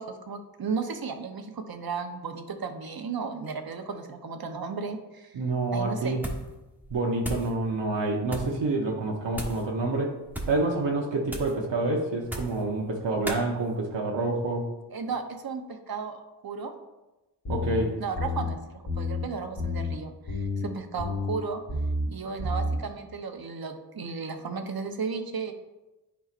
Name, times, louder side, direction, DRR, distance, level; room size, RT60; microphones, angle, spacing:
voice 1, 0.0-5.4 5.7-6.2 14.9-16.7 18.0-18.6 18.9-21.6 22.1-25.5, right 5 dB, 55° right, 6 dB, 0.9 m, -34 dB
voice 2, 5.3-6.3 6.9-10.2 10.5-14.6 17.5-17.9, right 2 dB, 80° right, -1 dB, 0.9 m, -27 dB
sound 1, 6.2-6.6 6.8-7.5 8.2-8.6 9.3-9.7 10.2-10.6 11.3-11.6 12.2-12.6 13.2-13.5, right 1 dB, 5° right, 1.3 m, -36 dB
sound 2, 17.4-17.8 18.1-18.5 18.9-19.2 19.6-19.9 20.3-20.6 21.0-21.3 21.7-22.0 22.4-22.8, left 2 dB, 60° left, 2.3 m, -29 dB
10.0 x 4.6 x 2.5 m, 1.1 s
cardioid pair, 60°, 43 cm